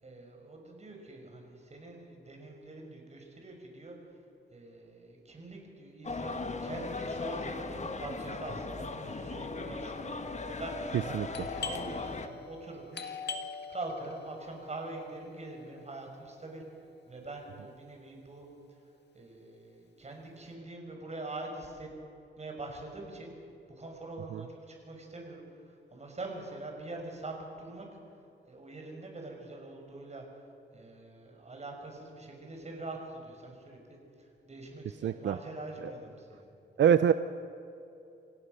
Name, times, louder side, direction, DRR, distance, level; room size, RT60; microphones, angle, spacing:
voice 1, 0.0-4.0 4.5-10.1 10.5-11.2 11.6-13.0 13.7-16.6 17.1-18.5 19.1-21.9 22.4-23.3 23.8-27.9 28.5-30.2 30.7-36.4, right 2 dB, 35° right, 2 dB, 5.7 m, -44 dB
sound 1, 6.0-12.3, left 3 dB, 40° left, 1.6 m, -38 dB
Doorbell, 11.3-16.8, left 5 dB, 65° left, 1.9 m, -43 dB
voice 2, 35.0-35.4 36.8-37.1, right 8 dB, 80° right, 12 dB, 0.6 m, -24 dB
27.5 x 17.0 x 6.6 m, 2.8 s
cardioid pair, 95°, 19 cm